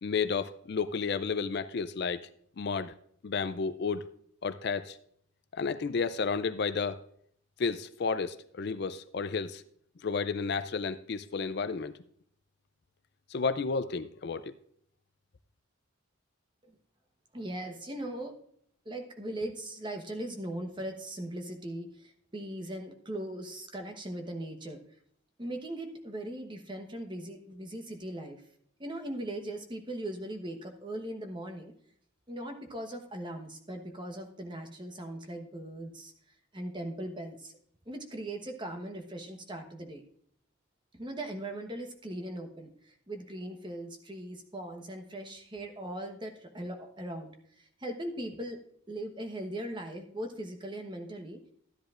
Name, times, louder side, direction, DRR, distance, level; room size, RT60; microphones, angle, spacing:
voice 1, 0.0-2.3 2.6-2.9 3.2-4.1 4.4-5.0 5.5-7.0 7.6-9.6 10.0-11.9 13.3-14.5, left 5 dB, 50° left, 12 dB, 0.4 m, -32 dB
voice 2, 17.3-18.3 18.8-24.8 25.4-28.4 28.8-31.7 32.3-36.1 36.5-37.5 37.9-40.0 41.0-47.3 47.8-48.6 48.9-51.4, right 1 dB, 20° right, 5 dB, 1.1 m, -39 dB
13.5 x 10.5 x 2.5 m, 0.65 s
head